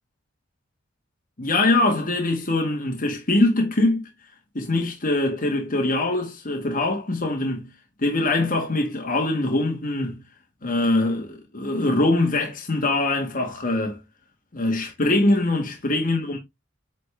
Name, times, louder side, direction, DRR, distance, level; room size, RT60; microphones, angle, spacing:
voice 1, 1.4-4.0 4.5-7.7 8.0-10.2 10.6-14.0 14.5-16.4, left 2 dB, 45° left, 1.6 m, -23 dB
8.4 x 4.2 x 3.3 m
head